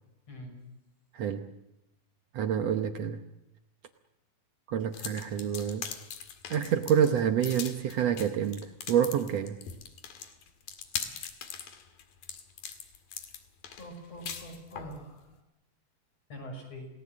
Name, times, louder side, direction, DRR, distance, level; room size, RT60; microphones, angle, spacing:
voice 1, 0.3-0.6 13.8-15.3 16.3-16.9, equal, 45° left, 2 dB, 7.4 m, -44 dB
voice 2, 1.1-1.5 2.3-3.2 4.7-5.9 6.5-9.6, right 8 dB, 70° right, 7 dB, 1.6 m, -28 dB
sound 1, 4.9-15.0, left 7 dB, 70° left, 3.7 m, -41 dB
29.0 x 19.0 x 7.5 m, 0.89 s
omnidirectional pair, 4.2 m